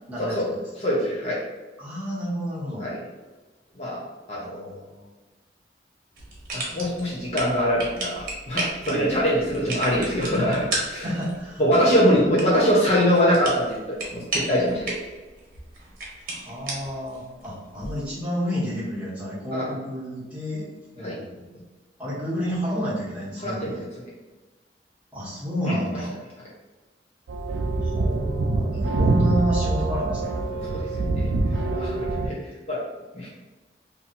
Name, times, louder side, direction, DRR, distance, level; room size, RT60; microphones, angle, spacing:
voice 1, 0.1-0.6 1.8-2.9 4.3-5.1 8.9-9.1 11.0-11.6 16.2-20.6 20.9-21.6 22.0-23.8 25.1-26.1 27.8-30.7, equal, 5° right, -11 dB, 1.3 m, -30 dB
voice 2, 0.8-1.4 2.8-3.0 3.8-4.0 4.3-4.7 6.5-11.0 11.6-14.9 19.5-19.7 21.0-21.2 23.4-23.7 25.7-25.8 30.7-31.3 31.7-32.4 32.7-32.8 33.1-33.3, equal, 35° left, -7 dB, 0.7 m, -23 dB
sound 1, 6.1-18.1, right 2 dB, 50° right, 0.9 m, -35 dB
sound 2, 27.3-32.3, right 2 dB, 85° right, 0.4 m, -24 dB
2.7 x 2.6 x 4.2 m, 1.2 s
head